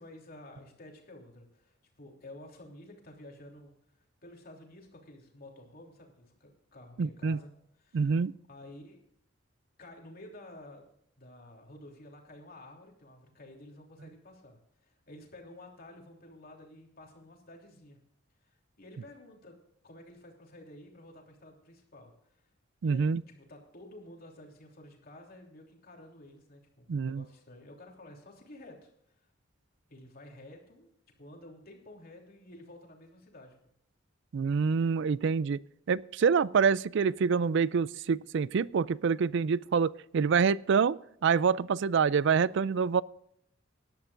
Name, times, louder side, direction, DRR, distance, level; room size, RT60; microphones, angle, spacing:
voice 1, 0.0-3.7 4.2-7.5 7.8-8.1 8.5-9.0 9.8-10.9 11.2-18.0 18.4-19.6 19.8-22.4 22.8-28.9 29.9-30.9 31.2-33.5, left 1 dB, 50° left, 1 dB, 3.2 m, -51 dB
voice 2, 7.0-7.4 7.9-8.3 22.8-23.2 26.9-27.2 34.3-35.6 35.9-43.0, right 6 dB, 60° right, 20 dB, 0.4 m, -26 dB
19.0 x 11.5 x 2.6 m, 0.73 s
head